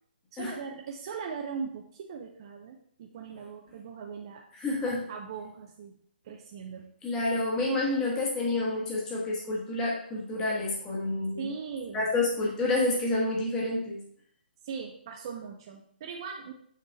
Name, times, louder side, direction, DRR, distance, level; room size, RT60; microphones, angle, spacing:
voice 1, 0.3-4.4 5.1-6.0 6.2-6.9 11.4-12.1 14.6-16.5, right 6 dB, 25° right, 1 dB, 0.5 m, -39 dB
voice 2, 4.5-5.0 7.0-11.5 11.9-14.0, left 2 dB, 10° left, -4 dB, 1.2 m, -29 dB
6.7 x 4.7 x 3.4 m, 0.63 s
hypercardioid pair, 170°, 6 cm